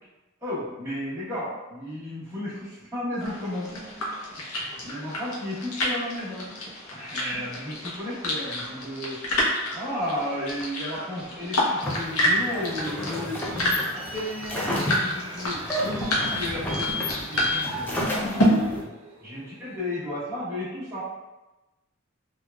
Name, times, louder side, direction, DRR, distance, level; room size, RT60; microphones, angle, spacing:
voice 1, 0.4-3.7 4.6-6.5 6.9-9.2 9.7-15.6 16.1-18.2 19.2-21.0, left 1 dB, 15° right, -11 dB, 1.0 m, -33 dB
sound 1, 3.2-18.5, left 1 dB, 90° left, 0.6 m, -30 dB
sound 2, 11.8-18.8, equal, 10° left, 0.4 m, -32 dB
sound 3, 12.5-19.8, left 3 dB, 80° right, 0.5 m, -38 dB
3.2 x 2.2 x 2.2 m, 1.1 s
head